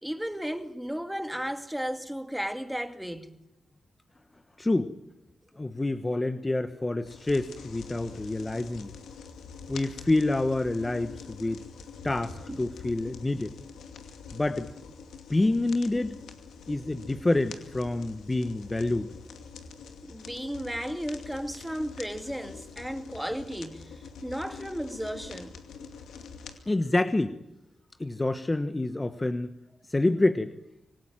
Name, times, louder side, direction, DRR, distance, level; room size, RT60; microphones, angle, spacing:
voice 1, 0.0-3.4 5.5-5.6 12.5-12.6 20.0-25.6, equal, 5° right, 2.5 m, -34 dB
voice 2, 4.6-4.9 5.6-8.9 9.7-11.6 12.0-13.5 14.3-14.7 15.3-16.2 16.7-19.1 26.7-27.3 28.0-29.5 29.9-30.5, left 2 dB, 25° left, 1.3 m, -27 dB
sound 1, 7.0-26.6, left 5 dB, 85° left, 2.5 m, -45 dB
26.0 x 19.0 x 9.0 m
supercardioid pair, 45°, 0 cm